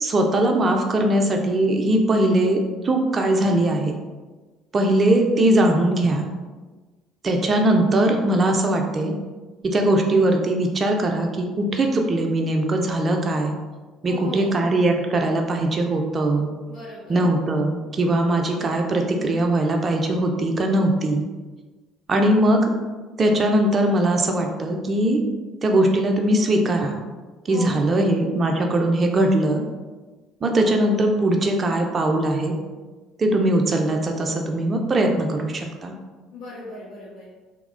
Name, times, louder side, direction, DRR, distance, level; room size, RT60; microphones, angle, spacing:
voice 1, 0.0-3.9 4.7-6.3 7.2-9.1 9.6-13.5 14.0-16.5 17.1-21.2 22.1-22.7 23.2-25.2 25.6-27.0 27.5-29.6 30.4-32.5 33.2-35.9, right 1 dB, 35° right, 2 dB, 0.3 m, -20 dB
voice 2, 14.0-14.7 16.7-17.3 27.5-28.0 36.3-37.3, left 1 dB, 75° left, -10 dB, 0.7 m, -38 dB
2.9 x 2.1 x 2.4 m, 1.3 s
hypercardioid pair, 60°, 0 cm